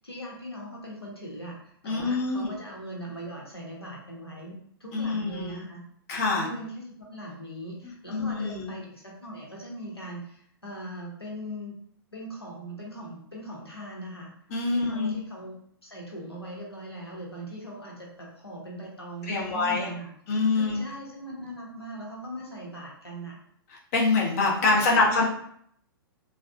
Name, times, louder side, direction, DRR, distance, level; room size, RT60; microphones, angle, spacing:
voice 1, 0.0-5.8 6.4-11.8 12.1-14.3 14.7-15.6 15.8-20.1 20.6-23.4 24.6-25.2, right 1 dB, 85° left, -3 dB, 1.1 m, -40 dB
voice 2, 1.8-2.5 4.9-5.6 6.1-6.5 8.1-8.7 14.5-15.2 19.3-19.9 20.3-20.8 23.7-25.2, left 3 dB, 35° left, -2 dB, 0.8 m, -25 dB
3.3 x 2.3 x 2.3 m, 0.65 s
figure-of-eight pair, 115°, 13 cm